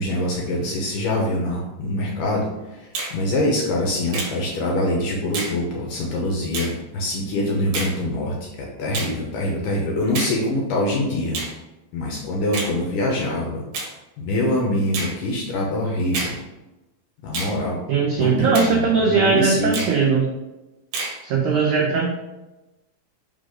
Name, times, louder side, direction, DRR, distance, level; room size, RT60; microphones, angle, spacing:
voice 1, 0.0-2.5 3.1-11.4 11.9-13.6 14.2-16.3 17.2-17.8 18.2-19.7, left 1 dB, 75° left, -1 dB, 2.1 m, -24 dB
Finger snapping, 2.9-3.2 4.1-4.4 5.3-5.6 6.5-6.7 7.7-8.0 8.9-9.2 10.1-10.4 11.3-11.5 12.5-12.7 13.7-13.9 14.9-15.2 16.1-16.4 17.3-17.6 18.5-18.8 19.7-20.0 20.9-21.2, right 3 dB, 65° right, 2.4 m, -28 dB
voice 2, 17.9-20.3 21.2-22.1, right 5 dB, 85° right, -2 dB, 1.7 m, -19 dB
5.5 x 4.0 x 4.9 m, 1.0 s
omnidirectional pair, 4.5 m